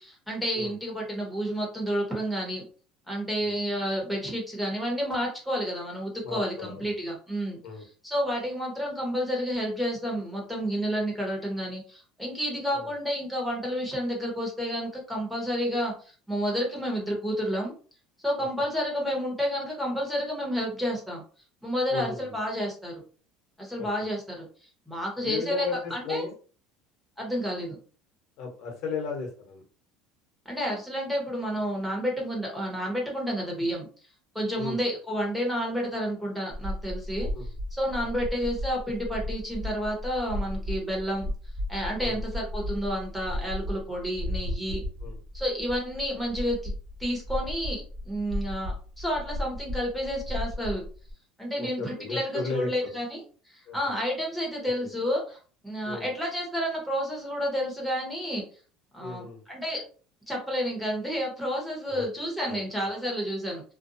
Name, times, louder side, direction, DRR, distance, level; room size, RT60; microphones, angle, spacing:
voice 1, 0.0-2.7 3.1-7.6 8.0-17.7 18.2-21.2 21.6-23.0 23.6-24.5 24.9-26.2 27.2-27.8 30.4-33.9 34.3-37.3 37.7-41.3 41.7-44.8 45.3-46.7 47.0-50.8 51.4-53.2 53.5-55.4 55.6-58.4 58.9-59.8 60.3-63.6, equal, ahead, -2 dB, 1.0 m, -30 dB
voice 2, 6.2-6.9 7.6-7.8 12.7-12.9 21.9-22.3 23.8-23.9 25.2-26.3 28.4-29.6 34.6-34.8 37.3-37.5 38.0-38.1 42.0-42.2 44.2-44.3 45.0-45.2 51.6-52.9 53.7-53.8 54.6-54.9 55.8-56.1 59.0-59.4 61.9-62.0 62.5-62.6, left 4 dB, 60° left, 2 dB, 1.0 m, -35 dB
sound 1, 36.5-51.1, left 1 dB, 30° right, 1.3 m, -35 dB
2.5 x 2.2 x 2.6 m, 0.40 s
cardioid pair, 135°, 0 cm